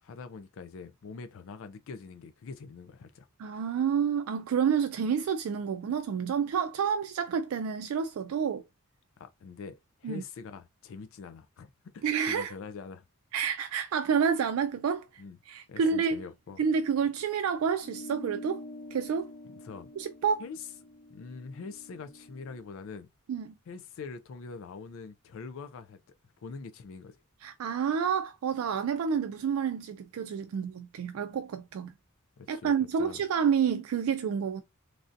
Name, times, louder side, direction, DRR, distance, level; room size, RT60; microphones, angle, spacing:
voice 1, 0.0-3.3 9.2-13.1 15.2-15.4 15.7-16.6 19.4-19.9 20.4-20.7 21.1-23.1 23.7-26.0 26.4-27.2 32.4-33.2, left 5 dB, 65° left, 0.4 m, -44 dB
voice 2, 3.4-8.6 10.0-10.2 12.0-12.5 13.3-15.2 15.5-16.2 16.6-18.6 18.9-19.3 20.0-20.4 23.3-23.5 27.4-31.9 32.5-34.6, right 7 dB, 80° right, 0.3 m, -29 dB
sound 1, 17.8-22.6, left 1 dB, 85° left, 1.5 m, -46 dB
3.2 x 2.6 x 2.5 m
head